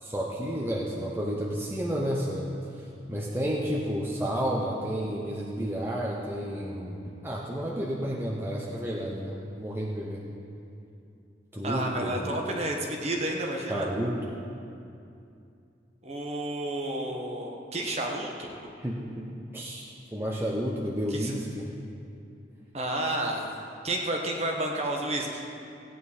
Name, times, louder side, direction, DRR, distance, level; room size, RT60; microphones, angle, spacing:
voice 1, 0.0-10.2 11.5-12.4 13.7-14.4 18.8-19.8 20.1-21.7, equal, 15° right, -4 dB, 0.9 m, -31 dB
voice 2, 11.6-13.9 16.0-18.5 21.1-21.3 22.7-23.6 23.8-25.4, right 1 dB, 35° right, 0 dB, 1.3 m, -31 dB
17.0 x 9.3 x 4.3 m, 2.6 s
head